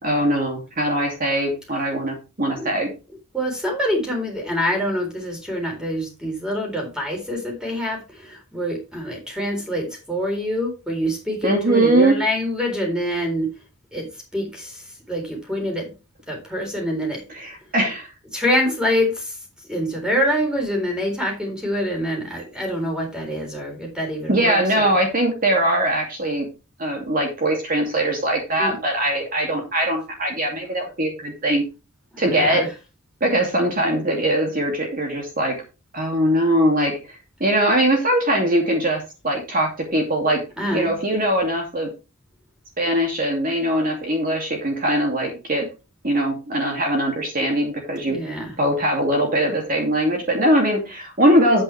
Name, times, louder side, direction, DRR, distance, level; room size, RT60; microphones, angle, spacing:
voice 1, 0.0-2.9 11.4-12.2 17.3-18.1 24.3-26.5 26.8-31.6 32.2-32.7 33.2-35.6 35.9-37.0 37.4-40.4 40.7-41.9 42.8-45.7 46.0-48.2 48.6-51.6, right 1 dB, 40° right, 2.6 m, -21 dB
voice 2, 3.3-13.5 13.9-14.1 14.3-15.9 16.3-17.2 18.3-19.4 19.7-24.9 28.6-28.7 32.1-32.7 40.6-40.9 48.0-48.5, equal, 5° right, 3.9 m, -25 dB
9.6 x 8.7 x 3.4 m
head